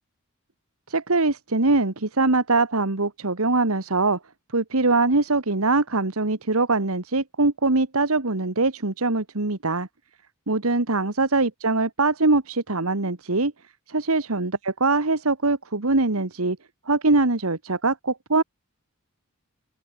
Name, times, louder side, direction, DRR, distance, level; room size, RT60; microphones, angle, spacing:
voice 1, 0.9-4.2 4.5-9.9 10.5-13.5 13.9-16.6 16.9-18.4, right 3 dB, 80° right, 1.8 m, -22 dB
head